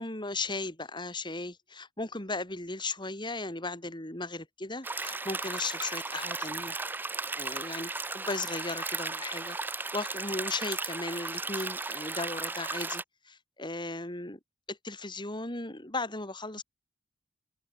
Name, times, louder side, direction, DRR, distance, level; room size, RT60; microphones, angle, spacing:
voice 1, 0.0-6.8 7.3-9.6 9.9-14.4 14.7-16.6, left 2 dB, 25° left, 5.1 m, -36 dB
sound 1, 4.8-13.0, right 3 dB, 10° right, 0.3 m, -35 dB
head